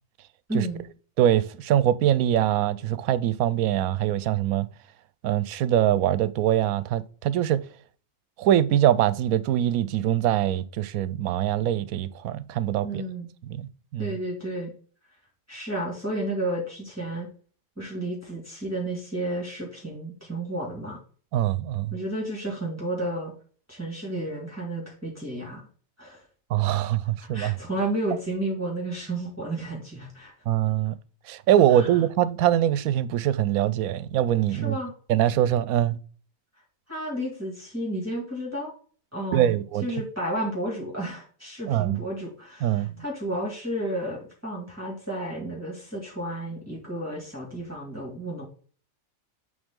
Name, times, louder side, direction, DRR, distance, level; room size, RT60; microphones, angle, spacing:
voice 1, 0.5-0.8 12.8-13.3 14.0-14.7 15.5-17.3 17.8-21.0 21.9-23.3 23.7-25.7 26.0-26.2 27.3-30.3 31.7-31.9 34.5-34.9 36.9-38.7 39.1-39.6 39.8-48.5, right 1 dB, 10° right, 2.1 m, -32 dB
voice 2, 1.2-4.7 5.2-7.6 8.4-13.0 13.4-14.2 21.3-21.9 26.5-27.5 30.5-31.0 31.3-34.8 35.1-36.0 39.3-39.9 41.6-42.0 42.6-43.0, right 11 dB, 80° right, 1.0 m, -23 dB
7.9 x 3.9 x 3.7 m
omnidirectional pair, 1.5 m